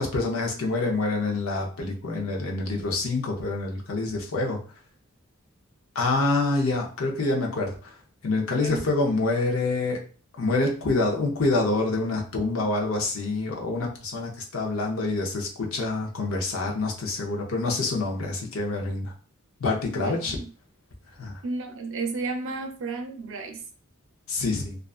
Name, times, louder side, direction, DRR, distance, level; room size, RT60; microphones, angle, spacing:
voice 1, 0.0-4.6 5.9-7.9 8.2-10.0 10.4-19.1 19.6-20.4 21.2-21.3 24.3-24.8, left 3 dB, 80° left, 0 dB, 0.7 m, -26 dB
voice 2, 8.5-8.8 19.9-20.5 21.4-23.6, right 3 dB, 65° right, 4 dB, 0.5 m, -33 dB
2.4 x 2.3 x 2.3 m, 0.39 s
head